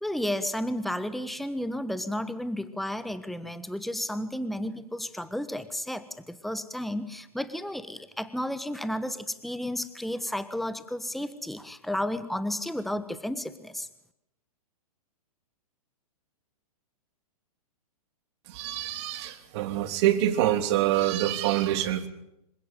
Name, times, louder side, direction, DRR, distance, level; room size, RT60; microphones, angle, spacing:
voice 1, 0.0-13.9, left 1 dB, ahead, 13 dB, 1.4 m, -32 dB
voice 2, 18.5-22.1, right 12 dB, 45° right, 9 dB, 3.1 m, -26 dB
26.5 x 16.5 x 9.2 m, 0.83 s
hypercardioid pair, 115°, 19 cm